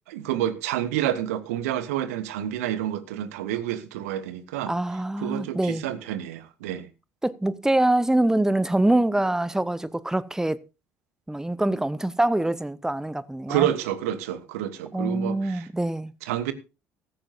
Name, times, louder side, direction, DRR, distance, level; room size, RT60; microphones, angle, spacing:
voice 1, 0.1-4.7 5.2-6.9 13.5-15.7 16.2-16.5, right 12 dB, 70° right, 1.2 m, -29 dB
voice 2, 4.7-5.8 7.2-10.6 11.3-13.7 14.9-16.1, right 1 dB, 5° right, 0.9 m, -24 dB
15.5 x 14.0 x 2.5 m
figure-of-eight pair, 55°, 8 cm